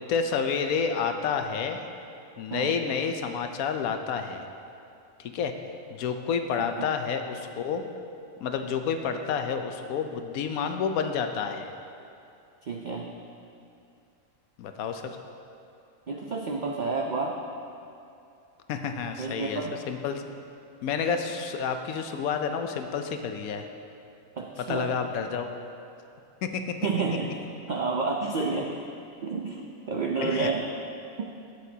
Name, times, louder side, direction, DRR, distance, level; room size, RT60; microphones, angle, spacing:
voice 1, 0.0-1.8 2.4-4.5 5.2-5.5 5.9-7.8 8.4-11.7 14.6-15.0 18.7-20.2 20.8-23.6 24.6-25.5 26.4-26.8 30.2-30.5, left 6 dB, 80° left, 6 dB, 1.1 m, -29 dB
voice 2, 12.6-13.1 16.1-17.4 19.2-19.8 24.4-24.9 26.8-28.9 29.2-30.7 31.2-31.3, right 4 dB, 85° right, 1 dB, 0.4 m, -30 dB
11.5 x 8.2 x 2.8 m, 2.6 s
omnidirectional pair, 1.5 m